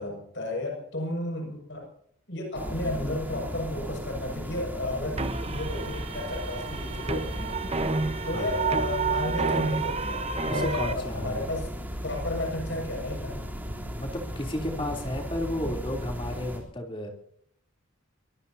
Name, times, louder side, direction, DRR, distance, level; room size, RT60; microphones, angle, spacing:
voice 1, 0.0-1.9 2.3-7.6 8.2-11.7 12.0-13.4 14.7-15.0 15.6-15.8, left 2 dB, 55° left, 1 dB, 6.3 m, -33 dB
sound 1, 2.5-16.6, equal, 10° right, 3.3 m, -36 dB
sound 2, 5.2-10.9, right 4 dB, 30° right, 1.0 m, -30 dB
voice 2, 10.5-11.5 13.7-17.1, left 1 dB, 25° left, 2 dB, 3.2 m, -33 dB
24.0 x 19.5 x 2.8 m, 0.65 s
head